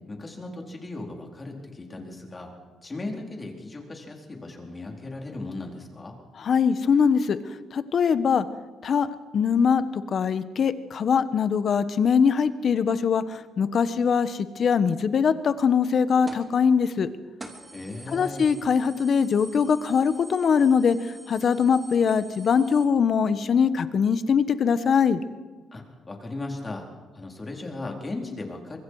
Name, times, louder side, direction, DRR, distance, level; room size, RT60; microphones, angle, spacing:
voice 1, 0.1-2.5 2.8-6.1 17.7-18.4 25.7-26.9 27.1-28.8, left 2 dB, 25° left, 1 dB, 4.4 m, -37 dB
voice 2, 6.4-7.4 7.7-8.5 8.8-9.1 9.3-17.1 18.1-21.0 21.3-25.2, left 6 dB, 55° left, 12 dB, 1.2 m, -22 dB
sound 1, 16.3-16.6 17.0-17.1 17.4-22.8, right 2 dB, 20° right, 3.4 m, -47 dB
25.0 x 21.5 x 4.9 m, 1.4 s
cardioid pair, 90°, 0 cm